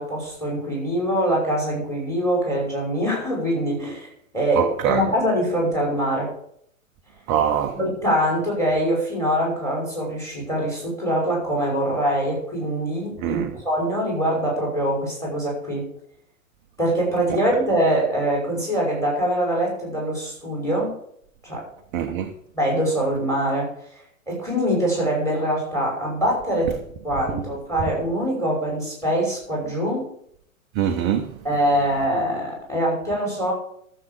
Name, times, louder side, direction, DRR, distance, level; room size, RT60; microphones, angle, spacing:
voice 1, 0.0-4.1 4.3-6.3 7.7-15.9 16.8-20.9 21.4-21.7 22.5-23.7 24.3-26.8 27.0-30.0 31.4-33.5, right 1 dB, 5° left, 5.8 m, -23 dB
voice 2, 4.6-5.0 7.3-7.8 13.2-13.6 17.3-17.4 21.9-22.3 30.7-31.3, right 9 dB, 20° right, 0.5 m, -23 dB
13.0 x 7.4 x 6.6 m
figure-of-eight pair, 110°, 41 cm